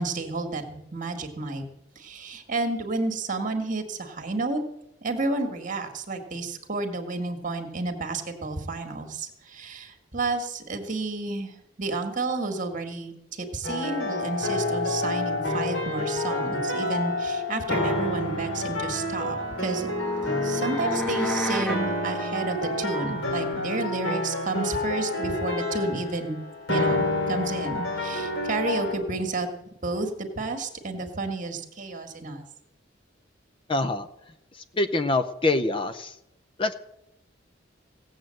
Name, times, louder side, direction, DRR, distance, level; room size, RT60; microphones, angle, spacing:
voice 1, 0.0-1.7 2.0-4.6 5.0-19.9 20.4-26.4 26.7-29.5 29.8-32.4, right 3 dB, 40° right, 5 dB, 1.8 m, -31 dB
sound 1, 13.6-28.9, left 2 dB, 70° left, 4.6 m, -29 dB
sound 2, 19.2-21.8, right 1 dB, 5° left, 1.2 m, -32 dB
voice 2, 33.7-34.1 34.5-36.2 36.6-36.7, left 2 dB, 25° left, 11 dB, 0.5 m, -25 dB
16.5 x 7.8 x 7.7 m, 0.85 s
head